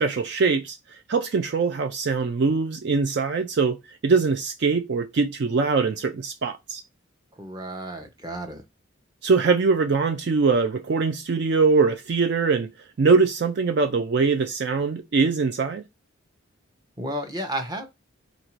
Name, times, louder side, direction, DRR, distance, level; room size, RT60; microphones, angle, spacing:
voice 1, 0.0-6.8 9.2-12.7 13.0-15.8, right 4 dB, 55° right, 0.4 m, -22 dB
voice 2, 7.4-8.6 17.0-17.9, right 1 dB, 20° right, 0.8 m, -32 dB
4.0 x 2.6 x 4.4 m
head